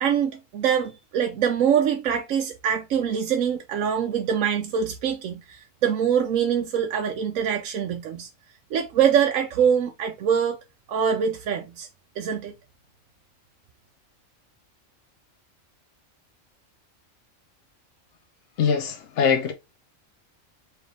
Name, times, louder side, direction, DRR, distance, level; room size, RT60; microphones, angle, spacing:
voice 1, 0.0-8.3 8.7-10.6 10.9-11.9 12.2-12.5, right 8 dB, 80° right, 1.0 m, -24 dB
voice 2, 18.6-19.5, left 6 dB, 70° left, 1.0 m, -22 dB
4.5 x 2.7 x 3.2 m
omnidirectional pair, 1.4 m